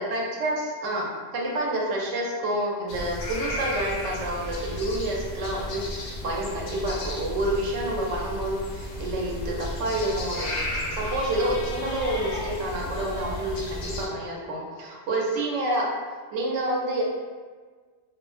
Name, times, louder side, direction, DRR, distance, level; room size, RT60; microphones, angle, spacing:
voice 1, 0.0-10.5 10.9-15.9 16.3-17.0, right 1 dB, 75° right, -3 dB, 0.9 m, -28 dB
sound 1, 2.9-14.1, left 1 dB, 65° left, 0.5 m, -33 dB
2.4 x 2.0 x 3.0 m, 1.5 s
omnidirectional pair, 1.3 m